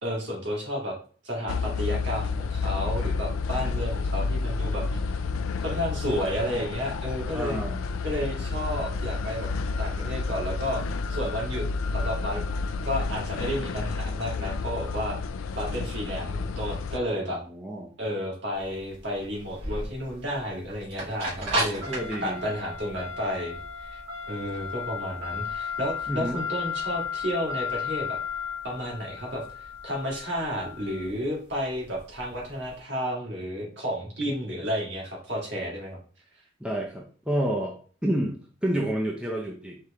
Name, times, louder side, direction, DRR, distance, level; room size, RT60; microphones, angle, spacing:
voice 1, 0.0-1.0 1.2-5.0 5.6-7.6 8.0-9.5 9.8-10.8 11.1-11.7 11.9-12.4 12.8-15.2 15.5-17.4 18.0-21.8 22.2-23.6 23.9-24.0 24.3-28.2 28.6-29.4 29.8-36.0, equal, 60° right, -2 dB, 1.9 m, -31 dB
sound 1, 1.5-17.0, left 4 dB, 90° left, 0.4 m, -30 dB
voice 2, 7.3-7.8 13.8-13.9 17.3-17.9 21.4-21.6 21.9-22.4 26.1-26.4 36.6-39.8, right 1 dB, 5° right, -1 dB, 0.5 m, -30 dB
sound 2, 18.6-32.7, left 3 dB, 80° right, 2.0 m, -34 dB
4.4 x 3.1 x 3.5 m, 0.40 s
head